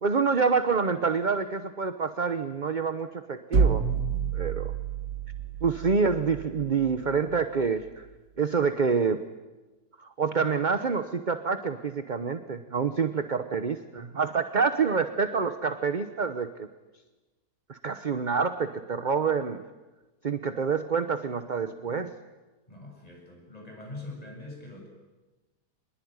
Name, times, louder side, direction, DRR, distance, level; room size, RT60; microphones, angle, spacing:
voice 1, 0.0-3.8 4.3-4.7 5.6-8.0 8.4-9.2 10.0-16.7 17.7-19.6 20.2-22.1, right 5 dB, 35° right, 9 dB, 0.9 m, -27 dB
sound 1, 3.5-7.4, right 6 dB, 55° right, 1.8 m, -29 dB
voice 2, 22.7-24.9, left 2 dB, 20° left, 0 dB, 8.1 m, -43 dB
24.0 x 21.5 x 9.6 m, 1.2 s
omnidirectional pair, 1.7 m